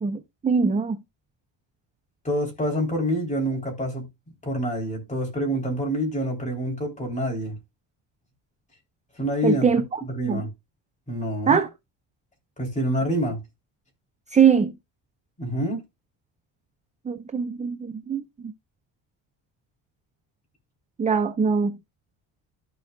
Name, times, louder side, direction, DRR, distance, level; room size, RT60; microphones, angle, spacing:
voice 1, 0.0-1.0 9.4-9.8 10.2-10.4 11.5-11.7 14.3-14.7 17.1-18.5 21.0-21.8, right 6 dB, 15° right, 0.4 m, -22 dB
voice 2, 2.2-7.6 9.1-9.7 10.0-10.5 11.1-11.6 12.6-13.4 15.4-15.8, equal, 15° left, 3.2 m, -27 dB
13.5 x 4.7 x 2.3 m
cardioid pair, 170°, 49 cm